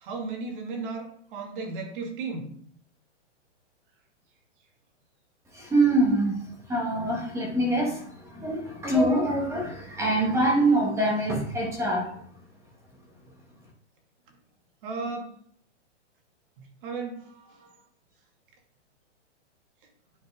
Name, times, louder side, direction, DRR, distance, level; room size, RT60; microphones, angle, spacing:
voice 1, 0.0-2.5 14.8-15.3 16.8-17.8, right 4 dB, 45° right, 2 dB, 2.2 m, -35 dB
voice 2, 5.5-6.4 6.7-12.1, right 1 dB, 10° right, 0 dB, 1.5 m, -24 dB
11.0 x 4.1 x 3.6 m, 0.62 s
hypercardioid pair, 150°, 36 cm